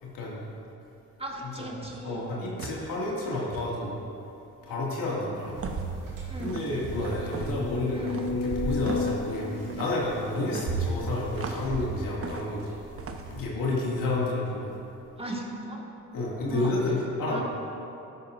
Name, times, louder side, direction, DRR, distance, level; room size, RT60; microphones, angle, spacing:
voice 1, 0.0-0.5 1.4-1.7 2.0-4.0 4.6-5.6 6.4-12.7 13.3-14.7 16.1-17.4, left 2 dB, 80° left, -5 dB, 2.3 m, -30 dB
voice 2, 1.2-2.3 6.3-6.6 7.9-8.3 15.2-15.9 16.5-16.7 17.3-17.4, right 2 dB, 15° right, -1 dB, 1.7 m, -36 dB
sound 1, 1.8-2.1 2.6-2.9 3.5-3.7 5.6-6.0 6.4-6.8 7.3-7.6 8.1-8.4 8.8-9.2 9.7-10.0 10.5-11.7 12.2-12.6 13.0-13.3, right 4 dB, 40° right, 0.9 m, -38 dB
sound 2, 5.5-13.4, right 3 dB, 75° right, 1.9 m, -36 dB
sound 3, 5.6-5.7 6.1-6.2 6.7-11.0 11.6-11.7, left 4 dB, 50° left, 0.5 m, -34 dB
12.5 x 9.6 x 2.6 m, 2.9 s
supercardioid pair, 50°, 33 cm